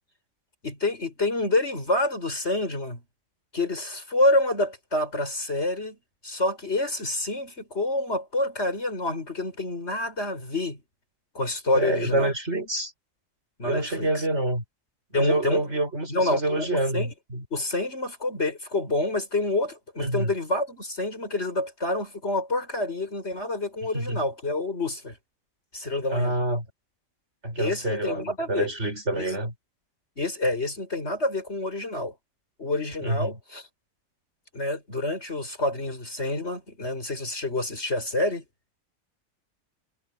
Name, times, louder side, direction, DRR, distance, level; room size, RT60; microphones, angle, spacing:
voice 1, 0.6-3.0 3.5-6.0 6.2-10.8 11.3-12.3 13.6-14.1 15.1-15.6 16.1-16.7 16.9-17.1 17.5-25.2 25.7-26.3 27.6-28.7 29.1-29.3 30.2-32.1 32.6-33.7 34.5-38.4, left 2 dB, 50° left, 5.9 m, -27 dB
voice 2, 11.7-12.9 13.6-14.6 15.1-17.4 20.0-20.3 23.9-24.2 26.1-26.7 27.4-29.5 33.0-33.4, right 1 dB, 55° right, 6.3 m, -27 dB
omnidirectional pair, 1.4 m